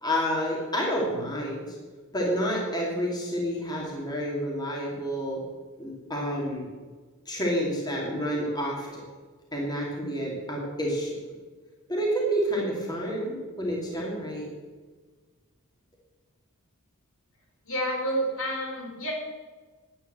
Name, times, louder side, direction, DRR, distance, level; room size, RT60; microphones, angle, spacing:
voice 1, 0.0-1.7 2.1-5.4 5.8-6.7 7.3-9.0 9.5-11.2 11.9-14.5, equal, 20° left, -3 dB, 2.7 m, -29 dB
voice 2, 17.6-19.1, right 1 dB, 65° left, -1 dB, 4.1 m, -29 dB
11.0 x 9.1 x 7.9 m, 1.4 s
head